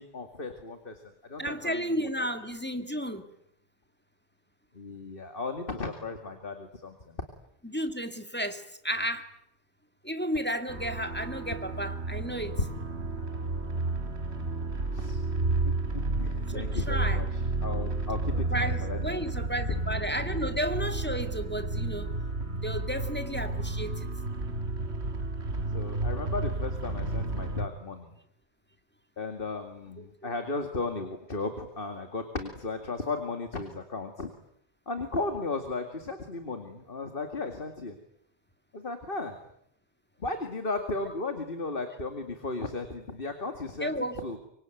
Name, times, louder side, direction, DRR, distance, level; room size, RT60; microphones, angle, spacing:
voice 1, 0.0-1.9 2.2-2.3 4.7-7.2 14.9-15.3 15.7-19.2 24.8-24.9 25.7-28.1 29.2-34.3 34.9-38.0 38.7-39.4 40.2-43.9 44.2-44.4, left 3 dB, 50° left, 7 dB, 2.5 m, -35 dB
voice 2, 1.4-3.3 7.6-9.3 10.0-12.6 16.5-17.2 18.3-22.1 22.5-24.1 30.0-30.1 43.8-44.2, equal, 10° left, 7 dB, 2.1 m, -33 dB
sound 1, 10.7-27.7, right 2 dB, 70° right, 2.4 m, -31 dB
25.0 x 24.5 x 9.2 m, 0.73 s
omnidirectional pair, 1.1 m